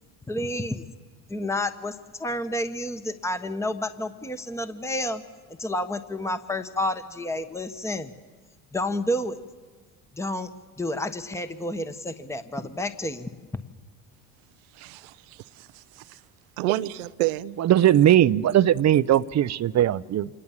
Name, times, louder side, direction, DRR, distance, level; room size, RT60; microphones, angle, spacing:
voice 1, 0.3-0.8 1.3-5.2 5.5-8.1 8.7-9.4 10.1-10.5 10.8-13.3, left 1 dB, 5° left, 1.2 m, -30 dB
voice 2, 14.8-16.2 16.6-17.6, right 17 dB, 80° right, 0.7 m, -30 dB
voice 3, 17.6-20.3, right 11 dB, 40° right, 0.6 m, -19 dB
26.0 x 20.0 x 7.4 m
hypercardioid pair, 70°, 43 cm